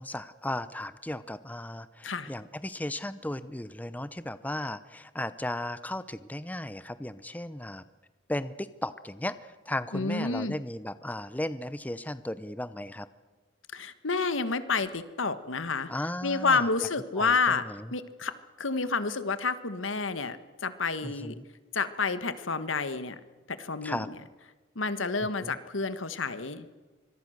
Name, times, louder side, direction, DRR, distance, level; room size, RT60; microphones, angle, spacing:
voice 1, 0.0-7.8 8.3-13.1 15.9-16.6 17.2-17.9 21.0-21.4 23.8-24.1 25.4-25.5, left 1 dB, 10° left, 14 dB, 0.6 m, -35 dB
voice 2, 9.9-10.5 13.7-15.9 16.2-17.6 17.9-20.4 20.6-21.3 21.7-23.2 23.5-24.2 24.7-26.7, left 4 dB, 85° left, 12 dB, 1.5 m, -29 dB
25.0 x 22.0 x 6.6 m, 1.3 s
head